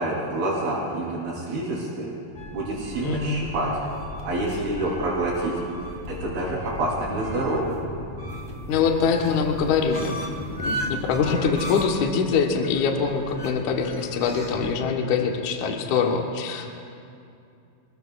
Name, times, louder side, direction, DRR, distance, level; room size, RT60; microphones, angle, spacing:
voice 1, 0.0-2.1 2.5-3.8 4.2-5.5 6.1-7.7, right 2 dB, 85° right, -9 dB, 5.1 m, -27 dB
sound 1, 2.3-14.7, equal, 25° left, 0.7 m, -36 dB
voice 2, 3.0-3.4 8.7-10.2 10.6-16.8, left 5 dB, 65° left, 1 dB, 2.3 m, -24 dB
28.5 x 21.0 x 2.4 m, 2.5 s
omnidirectional pair, 4.2 m